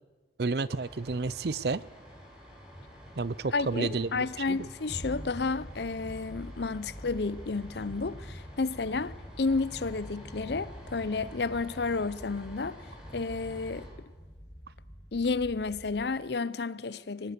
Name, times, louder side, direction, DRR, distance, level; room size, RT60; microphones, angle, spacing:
voice 1, 0.4-1.8 3.2-4.7, right 3 dB, 60° right, 0.6 m, -31 dB
sound 1, 0.7-13.9, equal, 5° right, 6.8 m, -48 dB
voice 2, 3.5-12.9 13.1-13.9 15.1-17.3, left 4 dB, 65° left, 0.7 m, -31 dB
sound 2, 4.9-16.1, equal, 10° left, 2.1 m, -46 dB
24.0 x 18.5 x 6.7 m
head